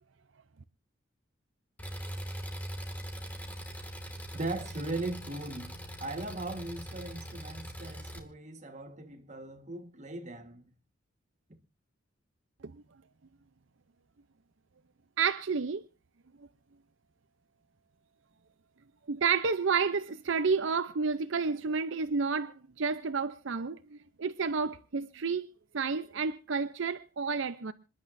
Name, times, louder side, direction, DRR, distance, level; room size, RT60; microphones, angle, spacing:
Engine, 1.8-8.2, equal, 10° left, 2.1 m, -41 dB
voice 1, 4.3-5.7 6.0-10.6 11.5-11.6, right 2 dB, 35° right, 1.5 m, -38 dB
voice 2, 15.2-15.8 19.1-25.5 25.7-27.7, right 5 dB, 65° right, 0.6 m, -30 dB
27.0 x 11.0 x 2.6 m
head